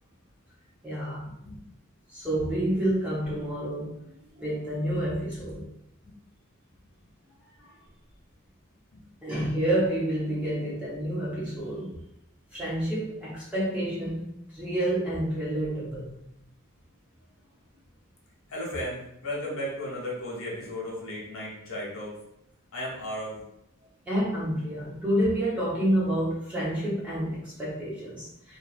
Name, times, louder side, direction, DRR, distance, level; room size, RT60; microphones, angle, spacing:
voice 1, 0.8-1.3 2.1-3.9 4.4-5.6 7.6-7.7 9.2-11.9 12.5-14.2 14.5-16.1 24.1-28.6, right 1 dB, 5° right, -9 dB, 1.0 m, -29 dB
voice 2, 18.5-22.1 22.7-23.4, left 1 dB, 75° left, -5 dB, 1.0 m, -35 dB
2.8 x 2.6 x 2.5 m, 0.79 s
head